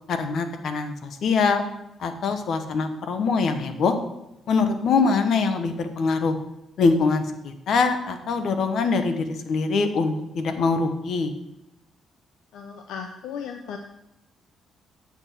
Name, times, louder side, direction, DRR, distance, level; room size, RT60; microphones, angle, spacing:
voice 1, 0.1-1.6 2.0-3.9 4.5-6.4 6.8-11.3, left 4 dB, 65° left, 8 dB, 1.1 m, -23 dB
voice 2, 12.5-13.8, left 7 dB, 85° left, 4 dB, 0.7 m, -36 dB
8.7 x 7.0 x 4.4 m, 0.89 s
cardioid pair, 90°, 0 cm